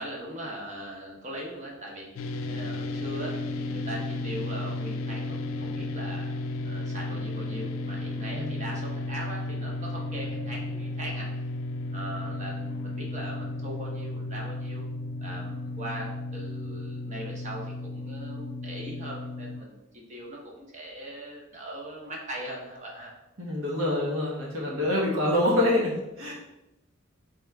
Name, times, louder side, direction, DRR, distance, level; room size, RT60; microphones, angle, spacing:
voice 1, 0.0-2.1 2.5-6.3 6.6-11.3 11.9-14.8 15.2-19.8 20.1-23.1 24.7-24.9, right 1 dB, 35° right, -1 dB, 0.9 m, -40 dB
sound 1, 2.2-19.6, left 2 dB, 70° left, 0.3 m, -34 dB
voice 2, 23.4-26.3, left 1 dB, 80° right, -4 dB, 1.4 m, -26 dB
3.7 x 3.5 x 3.4 m, 0.93 s
head